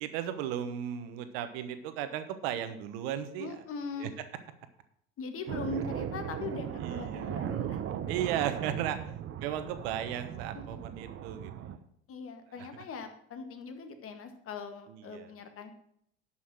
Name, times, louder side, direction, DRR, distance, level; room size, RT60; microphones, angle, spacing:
voice 1, 0.0-3.5 4.0-4.1 6.8-7.3 8.1-9.0 9.4-11.5 14.9-15.3, right 10 dB, 75° right, 10 dB, 1.1 m, -35 dB
voice 2, 3.4-4.1 5.2-7.8 10.5-10.8 12.1-15.7, left 4 dB, 45° left, 7 dB, 1.8 m, -41 dB
sound 1, 5.5-11.8, right 10 dB, 45° right, 0.9 m, -37 dB
11.5 x 5.7 x 6.0 m, 0.69 s
hypercardioid pair, 75°, 31 cm